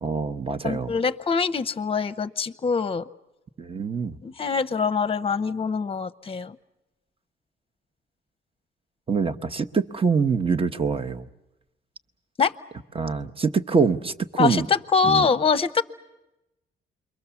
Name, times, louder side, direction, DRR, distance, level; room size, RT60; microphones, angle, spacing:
voice 1, 0.0-0.9 3.6-4.2 9.1-11.3 12.9-14.7 15.0-15.3, right 5 dB, 25° right, 11 dB, 0.9 m, -24 dB
voice 2, 0.6-3.1 4.2-6.6 12.4-12.6 14.4-15.8, left 5 dB, 30° left, 13 dB, 0.8 m, -24 dB
28.0 x 22.5 x 7.0 m, 0.95 s
cardioid pair, 90°, 20 cm